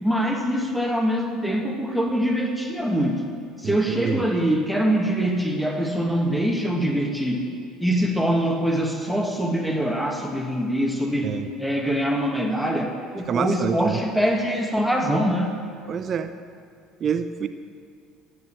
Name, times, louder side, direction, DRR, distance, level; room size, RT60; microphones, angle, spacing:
voice 1, 0.0-3.3 3.6-7.5 7.8-15.5, equal, ahead, 1 dB, 1.9 m, -24 dB
voice 2, 3.6-4.2 11.2-11.5 13.3-14.0 15.9-16.3 17.0-17.5, right 7 dB, 45° right, 10 dB, 0.6 m, -27 dB
14.5 x 7.8 x 7.7 m, 2.4 s
hypercardioid pair, 65°, 0 cm